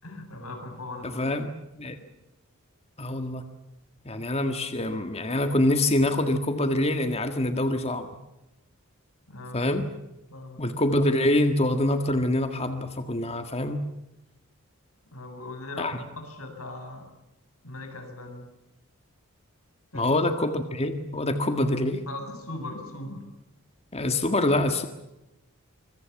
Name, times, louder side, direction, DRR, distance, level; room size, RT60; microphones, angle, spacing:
voice 1, 0.0-1.2 9.3-9.7 10.3-10.8 15.1-17.1 17.6-18.5 19.9-20.0 22.1-23.2, left 2 dB, 85° left, 5 dB, 7.8 m, -39 dB
voice 2, 1.0-1.5 1.7-2.0 3.0-3.5 4.1-8.1 9.5-9.8 10.6-13.8 15.8-16.0 19.9-22.0 23.9-24.9, left 1 dB, 30° left, 7 dB, 1.7 m, -25 dB
26.0 x 23.5 x 7.2 m, 0.94 s
head